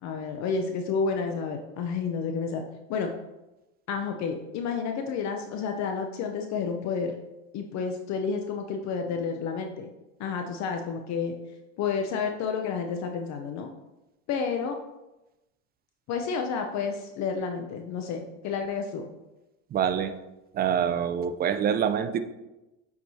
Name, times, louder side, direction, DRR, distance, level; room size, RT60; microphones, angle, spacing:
voice 1, 0.0-2.6 2.9-3.1 3.9-7.1 7.5-9.9 10.2-11.3 11.8-13.7 14.3-14.8 16.1-19.0, left 5 dB, 45° left, 4 dB, 0.7 m, -30 dB
voice 2, 19.7-20.1 20.5-22.2, right 8 dB, 25° right, 10 dB, 0.4 m, -25 dB
8.2 x 4.8 x 2.7 m, 1.0 s
supercardioid pair, 100°, 38 cm